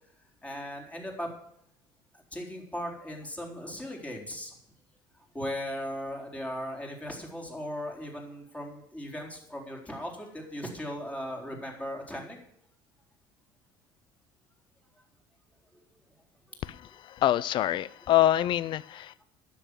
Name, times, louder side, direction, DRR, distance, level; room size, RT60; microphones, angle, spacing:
voice 1, 0.4-1.3 2.3-4.5 5.3-12.4 15.7-15.8, equal, 15° left, 0 dB, 4.2 m, -37 dB
voice 2, 17.2-19.2, left 13 dB, 55° left, 20 dB, 0.5 m, -25 dB
10.0 x 7.9 x 8.3 m, 0.73 s
hypercardioid pair, 75°, 10 cm